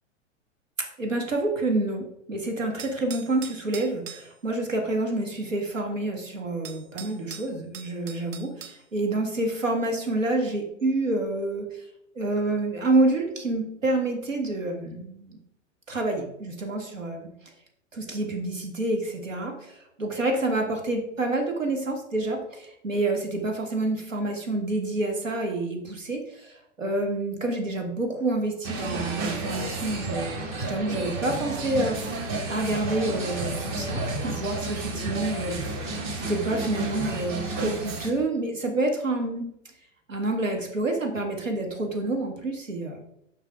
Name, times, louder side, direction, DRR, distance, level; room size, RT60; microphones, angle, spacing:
voice 1, 1.0-11.8 12.2-15.4 15.9-17.3 17.9-35.6 36.3-39.5 40.1-43.0, right 2 dB, 80° right, 3 dB, 1.8 m, -28 dB
sound 1, 2.8-4.3 6.1-6.2 6.6-8.8, right 8 dB, 55° right, 0.9 m, -41 dB
sound 2, 28.6-38.1, right 2 dB, 35° right, 1.5 m, -31 dB
5.7 x 5.7 x 4.7 m, 0.75 s
figure-of-eight pair, 100°, 38 cm